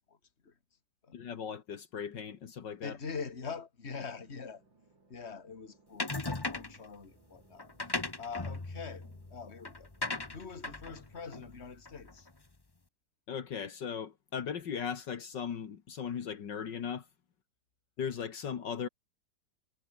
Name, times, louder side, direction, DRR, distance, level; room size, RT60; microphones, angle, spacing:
voice 1, 1.1-3.0 13.3-17.1 18.0-18.9, left 7 dB, 70° left, 2.2 m, -38 dB
voice 2, 2.8-4.6 5.1-7.7 8.2-9.9 10.3-12.3, left 5 dB, 35° left, 2.4 m, -43 dB
sound 1, 4.1-11.4, right 3 dB, 80° right, 6.0 m, -66 dB
sound 2, 6.0-6.8 7.6-12.3, left 2 dB, 15° left, 1.0 m, -38 dB
omnidirectional pair, 2.0 m